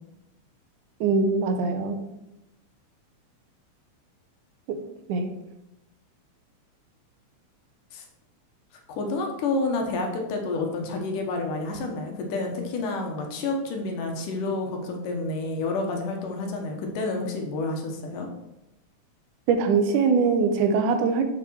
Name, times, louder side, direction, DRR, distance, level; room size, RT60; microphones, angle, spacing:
voice 1, 1.0-2.0 4.7-4.8 5.1-5.3 19.5-21.2, right 5 dB, 80° right, 6 dB, 2.3 m, -22 dB
voice 2, 8.9-18.3, left 3 dB, 85° left, 3 dB, 2.7 m, -29 dB
7.3 x 6.0 x 4.7 m, 0.91 s
omnidirectional pair, 3.6 m